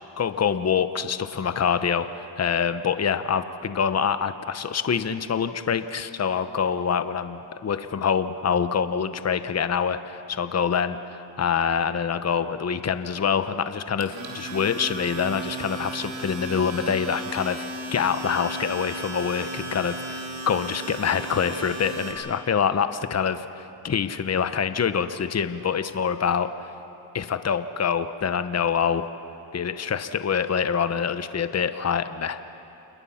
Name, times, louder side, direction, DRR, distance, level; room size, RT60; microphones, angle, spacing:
voice 1, 0.2-17.6 17.9-26.5 27.1-29.1 29.5-32.5, left 7 dB, 35° left, 11 dB, 1.0 m, -25 dB
Domestic sounds home sounds, 14.0-22.1, right 2 dB, 85° right, 3.5 m, -35 dB
29.0 x 21.5 x 5.8 m, 3.0 s
cardioid pair, 80°, 46 cm